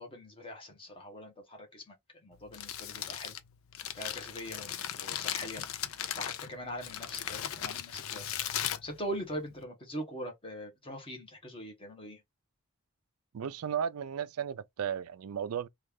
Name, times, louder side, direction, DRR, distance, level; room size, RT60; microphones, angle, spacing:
voice 1, 0.0-1.9 2.2-3.4 3.9-5.7 6.2-8.2 8.6-12.2, equal, 25° left, 1.0 m, -42 dB
Crumpling crinkling, 2.3-9.6, left 10 dB, 70° left, 0.5 m, -38 dB
voice 2, 13.3-15.7, right 8 dB, 85° right, 0.4 m, -34 dB
3.1 x 2.4 x 3.5 m
head